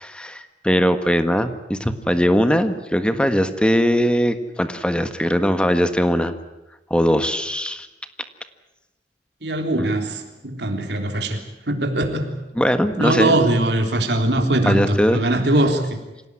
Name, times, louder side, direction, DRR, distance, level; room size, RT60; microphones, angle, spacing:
voice 1, 0.0-6.3 6.9-7.9 9.8-9.9 12.5-13.4 14.6-15.2, equal, 5° left, 9 dB, 1.5 m, -20 dB
voice 2, 9.4-11.4 11.7-12.3 13.0-16.0, right 1 dB, 70° right, 4 dB, 3.6 m, -21 dB
26.0 x 17.5 x 9.9 m, 1.0 s
head